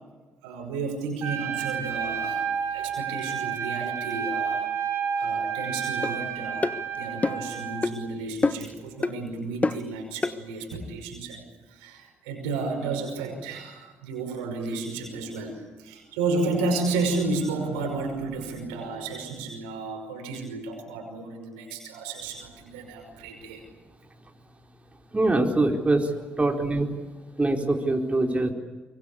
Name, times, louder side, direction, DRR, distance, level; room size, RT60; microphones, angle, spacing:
voice 1, 0.4-4.7 5.2-11.4 11.7-23.6 26.3-26.4, right 3 dB, 90° right, 3 dB, 5.5 m, -32 dB
Trumpet, 1.2-7.9, right 7 dB, 65° right, 6.1 m, -30 dB
sound 1, 6.0-6.2 6.6-6.8 7.2-7.5 7.8-8.0 8.4-8.7 9.0-9.2 9.6-9.9 10.2-10.4, left 3 dB, 30° left, 1.4 m, -25 dB
voice 2, 25.1-26.1 26.4-26.9 27.4-28.5, right 2 dB, 25° right, 2 dB, 4.2 m, -23 dB
24.5 x 23.5 x 8.6 m, 1.3 s
hypercardioid pair, 45°, 5 cm